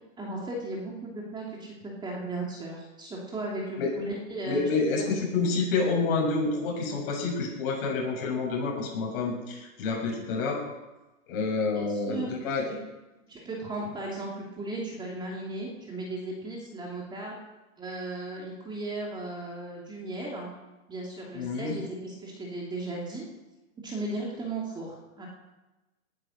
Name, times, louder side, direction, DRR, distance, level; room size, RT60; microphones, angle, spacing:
voice 1, 0.2-4.6 5.0-5.1 11.7-12.3 13.3-17.3 17.8-20.5 20.9-23.3 23.8-25.3, right 2 dB, 10° right, -2 dB, 2.8 m, -36 dB
voice 2, 4.5-10.6 11.3-12.6 21.3-21.7, left 4 dB, 45° left, -1 dB, 7.0 m, -28 dB
19.5 x 10.5 x 6.5 m, 1.1 s
hypercardioid pair, 150°, 40 cm